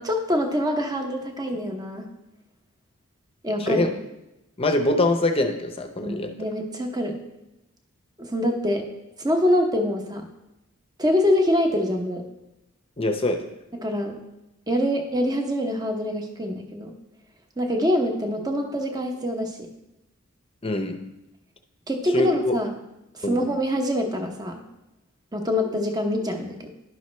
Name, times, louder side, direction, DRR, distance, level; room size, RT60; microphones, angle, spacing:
voice 1, 0.0-2.1 3.4-4.0 6.0-7.2 8.2-8.8 9.2-10.3 11.0-12.2 13.7-14.2 14.7-16.9 17.6-19.7 21.9-22.7 23.1-24.6 25.3-26.7, left 1 dB, 20° right, 4 dB, 0.8 m, -25 dB
voice 2, 4.6-6.3 13.0-13.5 20.6-21.0 22.1-22.5 23.2-23.4, left 2 dB, 25° left, 5 dB, 0.7 m, -23 dB
11.5 x 5.5 x 3.1 m, 0.93 s
head